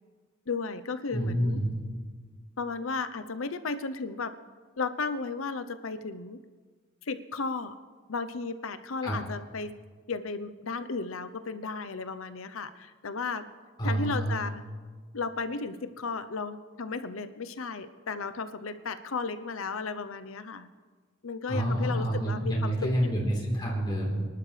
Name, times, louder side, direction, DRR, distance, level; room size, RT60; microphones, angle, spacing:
voice 1, 0.5-1.6 2.6-4.3 4.8-6.4 7.0-7.7 8.1-9.7 10.1-13.4 13.8-14.6 15.1-20.7 21.2-22.7 23.0-23.2, left 4 dB, 80° left, 11 dB, 0.7 m, -34 dB
voice 2, 1.1-1.8 9.0-9.2 13.8-14.4 21.5-24.3, right 1 dB, 20° left, -4 dB, 3.8 m, -28 dB
24.5 x 11.5 x 3.3 m, 1.5 s
head